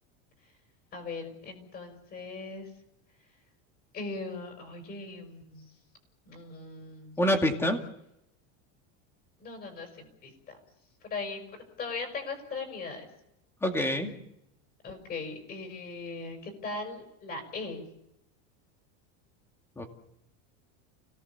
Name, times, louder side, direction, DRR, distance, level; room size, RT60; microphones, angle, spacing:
voice 1, 0.9-2.7 3.9-5.7 6.2-7.2 9.4-10.6 11.0-13.1 14.8-17.8, left 3 dB, 25° left, 5 dB, 6.1 m, -39 dB
voice 2, 7.2-7.8 13.6-14.1 19.8-19.9, left 1 dB, 5° left, 5 dB, 2.3 m, -26 dB
30.0 x 18.0 x 7.1 m, 0.84 s
cardioid pair, 170°, 36 cm